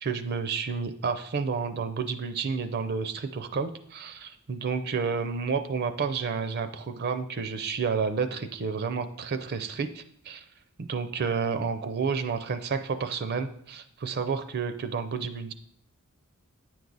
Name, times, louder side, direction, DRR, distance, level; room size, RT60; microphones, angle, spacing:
voice 1, 0.0-10.4 10.8-15.5, right 5 dB, 45° right, 10 dB, 0.4 m, -30 dB
8.8 x 4.7 x 4.0 m, 0.68 s
head